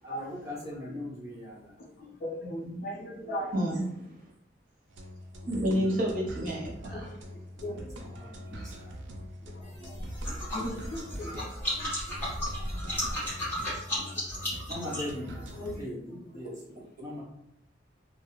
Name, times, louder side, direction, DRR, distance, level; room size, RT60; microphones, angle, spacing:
voice 1, 0.0-1.8 3.8-4.0 7.7-9.0 14.7-15.3 15.8-17.2, left 1 dB, 20° right, 0.8 m, -40 dB
voice 2, 1.8-3.7 5.8-6.0 6.8-7.8 8.5-8.8 9.4-9.9 10.5-11.5 12.9-13.0 13.9-14.1 15.5-16.2, equal, 55° left, 0.5 m, -39 dB
voice 3, 3.5-3.9 5.5-7.1, equal, 50° right, 0.8 m, -29 dB
sound 1, 4.9-15.8, equal, 85° right, 0.4 m, -43 dB
sound 2, 9.6-15.8, left 1 dB, 10° left, 1.2 m, -34 dB
2.3 x 2.0 x 3.0 m
head